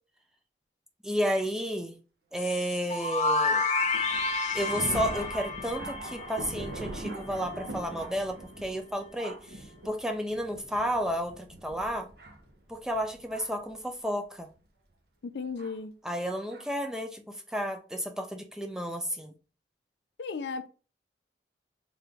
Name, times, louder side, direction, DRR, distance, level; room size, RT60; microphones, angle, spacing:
voice 1, 1.0-2.0 2.3-3.7 4.5-12.1 12.7-14.5 16.0-17.2 17.5-19.3, equal, 5° right, 0.4 m, -32 dB
sound 1, 2.4-7.1, left 3 dB, 40° left, 0.8 m, -30 dB
Thunder, 3.8-13.7 14.5-14.6 15.6-15.7 16.5-16.7, right 1 dB, 60° right, 0.8 m, -42 dB
voice 2, 15.3-15.9 20.2-20.7, left 4 dB, 70° left, 0.4 m, -35 dB
3.8 x 3.1 x 3.4 m
head